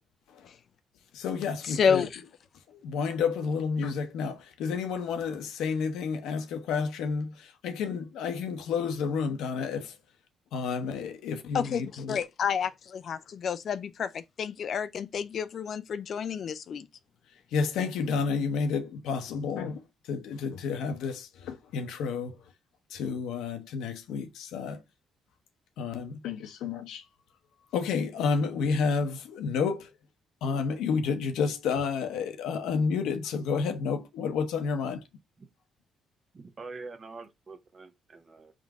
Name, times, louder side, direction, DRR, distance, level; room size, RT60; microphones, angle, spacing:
voice 1, 1.1-2.1 2.7-10.0 10.5-12.2 17.5-22.5 22.9-24.8 25.8-27.1 27.7-29.9 30.4-35.0, left 5 dB, 85° left, 0.8 m, -30 dB
voice 2, 1.8-2.1 11.5-11.8 12.1-16.9, left 7 dB, 60° left, 0.4 m, -29 dB
voice 3, 36.3-38.5, right 3 dB, 35° right, 1.0 m, -45 dB
3.7 x 2.6 x 4.6 m
cardioid pair, 90°, 0 cm